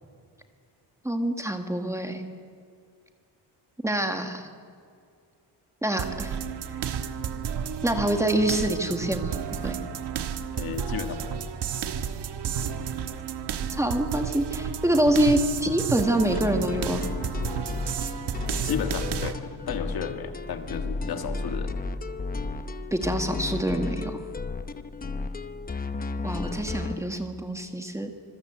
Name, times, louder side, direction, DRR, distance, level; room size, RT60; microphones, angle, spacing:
voice 1, 1.0-2.2 3.8-4.5 5.8-6.4 7.8-9.4 9.6-9.8 13.8-17.1 22.9-24.2 26.2-28.1, right 1 dB, 5° right, 5 dB, 1.5 m, -26 dB
sound 1, 6.0-19.3, right 7 dB, 70° right, 1.5 m, -32 dB
voice 2, 10.5-11.4 18.6-19.4 19.7-21.7, left 7 dB, 60° left, 7 dB, 1.6 m, -33 dB
sound 2, 16.3-27.0, left 3 dB, 20° left, 0.8 m, -33 dB
26.0 x 21.5 x 8.0 m, 2.2 s
wide cardioid pair, 175°, 42 cm